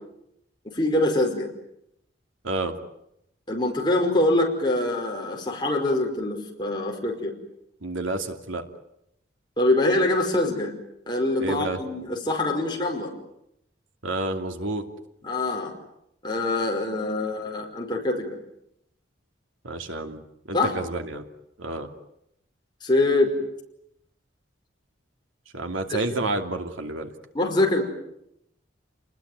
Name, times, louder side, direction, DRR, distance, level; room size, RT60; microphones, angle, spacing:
voice 1, 0.7-1.5 3.5-7.3 9.6-10.7 11.1-13.1 15.2-15.7 16.2-18.3 20.5-20.7 22.8-23.3 27.3-27.8, left 2 dB, 25° left, 1 dB, 5.3 m, -24 dB
voice 2, 7.8-8.6 11.4-11.8 14.0-14.8 19.6-21.2 21.6-21.9 25.5-27.1, right 2 dB, 90° right, 5 dB, 2.7 m, -29 dB
30.0 x 20.5 x 9.4 m, 0.80 s
head